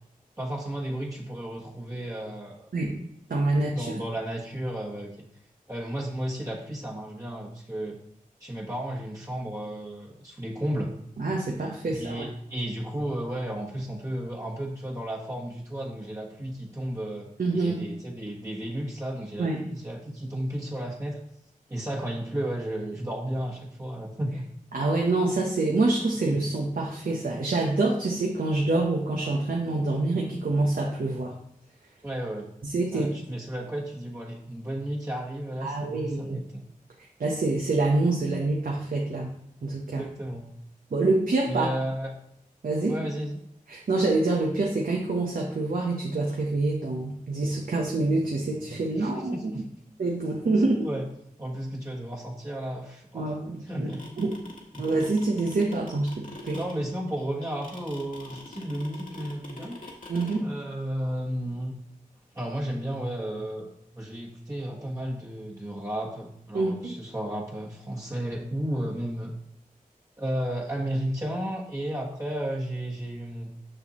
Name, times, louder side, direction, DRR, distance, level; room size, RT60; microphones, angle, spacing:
voice 1, 0.4-2.7 3.7-5.3 5.7-8.0 8.4-10.9 11.9-21.2 21.7-24.5 32.0-32.5 32.9-36.6 39.8-40.5 41.5-42.2 42.9-43.4 48.9-49.7 50.8-51.1 51.4-53.3 53.6-54.1 54.7-54.9 56.5-59.8 60.4-61.7 62.3-69.3 70.2-73.5, right 1 dB, 20° right, -4 dB, 1.3 m, -33 dB
voice 2, 3.3-3.9 11.2-12.3 17.4-17.8 19.4-19.6 24.7-31.3 32.6-33.1 35.6-36.4 37.2-39.3 39.6-40.0 40.9-41.7 42.6-42.9 43.7-49.6 50.0-50.9 53.1-53.9 54.2-54.3 54.8-56.6 60.1-60.4 66.5-66.9, right 2 dB, 75° right, -1 dB, 0.9 m, -26 dB
sound 1, 53.7-60.4, left 2 dB, 65° left, 1.7 m, -44 dB
6.7 x 6.2 x 3.0 m, 0.73 s
cardioid pair, 50°, 15 cm